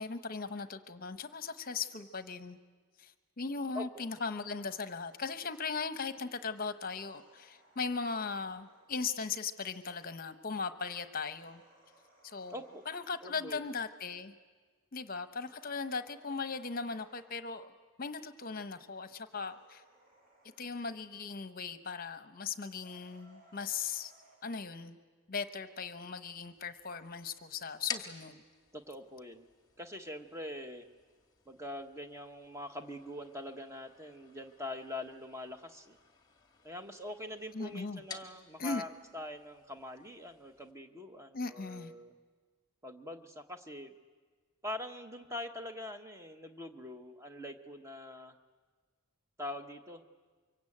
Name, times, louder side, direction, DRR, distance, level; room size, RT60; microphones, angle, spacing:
voice 1, 0.0-2.6 3.0-11.6 12.2-14.3 14.9-17.7 18.0-19.8 20.6-24.1 24.4-25.0 25.3-28.4 37.5-38.0 38.6-38.8 41.3-41.9, left 4 dB, 40° left, 10 dB, 1.0 m, -38 dB
sound 1, 4.5-4.9 6.7-9.0 11.2-13.6 15.4-17.5 19.2-20.7 22.7-24.4, right 1 dB, 40° right, 5.8 m, -65 dB
voice 2, 12.5-12.8 13.2-13.7 28.7-29.4 29.8-30.9 31.5-36.0 36.6-42.1 42.8-43.9 44.6-48.3 49.4-50.0, left 1 dB, 15° right, 6 dB, 1.1 m, -44 dB
sound 2, 26.3-40.7, left 6 dB, 20° left, 1.7 m, -51 dB
24.0 x 23.5 x 8.7 m, 1.5 s
head